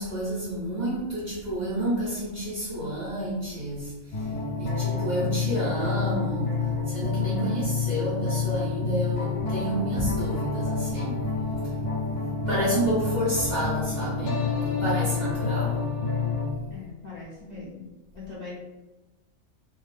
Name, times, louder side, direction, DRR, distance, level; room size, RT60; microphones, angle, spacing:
voice 1, 0.0-4.3 4.6-6.5 6.9-11.2 12.5-15.8, equal, 35° right, -9 dB, 1.0 m, -30 dB
sound 1, 4.1-16.5, left 4 dB, 70° left, 1.0 m, -28 dB
voice 2, 16.7-17.9 18.1-18.5, left 3 dB, 40° left, -11 dB, 0.7 m, -40 dB
2.6 x 2.1 x 3.2 m, 1.1 s
omnidirectional pair, 1.5 m